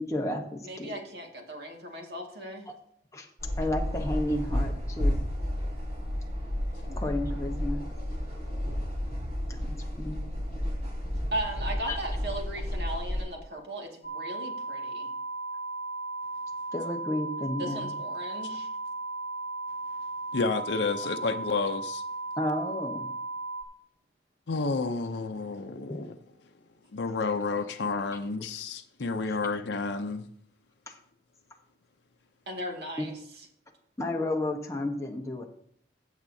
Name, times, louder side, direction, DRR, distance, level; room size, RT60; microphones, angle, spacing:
voice 1, 0.0-0.9 2.7-2.8 3.1-3.3 3.6-5.2 6.9-7.8 9.5-10.2 11.9-12.0 16.7-17.9 22.4-23.1 25.9-26.0 30.9-31.0 32.9-33.0 34.0-35.4, left 1 dB, 15° left, 1.1 m, -32 dB
voice 2, 0.6-2.7 11.3-15.1 17.6-18.7 32.5-33.1, right 1 dB, 65° right, 2.0 m, -37 dB
sound 1, 3.4-13.2, equal, 35° right, 4.7 m, -32 dB
sound 2, 14.0-23.6, right 2 dB, 45° left, 1.1 m, -36 dB
voice 3, 20.3-22.0 24.5-26.2 26.9-30.3, left 4 dB, 80° left, 0.6 m, -30 dB
15.5 x 7.2 x 2.7 m
head